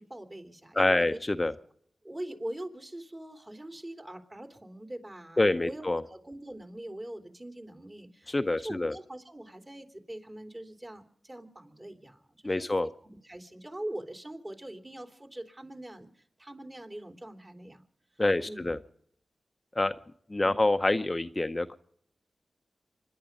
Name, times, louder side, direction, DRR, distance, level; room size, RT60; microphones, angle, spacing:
voice 1, 0.0-1.2 2.0-8.3 8.6-17.8 18.4-18.7 20.4-20.6, right 1 dB, 30° right, 4 dB, 3.1 m, -43 dB
voice 2, 0.8-1.5 5.4-6.0 8.3-8.9 12.4-12.9 18.2-18.8 19.7-19.9 20.3-21.8, left 2 dB, 30° left, 9 dB, 0.7 m, -26 dB
25.5 x 11.0 x 5.3 m, 0.65 s
cardioid pair, 40°, 0 cm